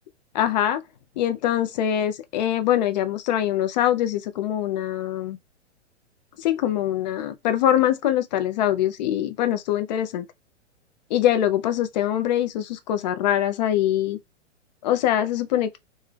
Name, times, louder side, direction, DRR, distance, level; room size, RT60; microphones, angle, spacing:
voice 1, 0.3-0.8 1.2-5.4 6.4-10.3 11.1-14.2 14.8-15.8, left 11 dB, 35° left, 0.6 m, -23 dB
3.3 x 2.7 x 3.3 m
figure-of-eight pair, 110°, 36 cm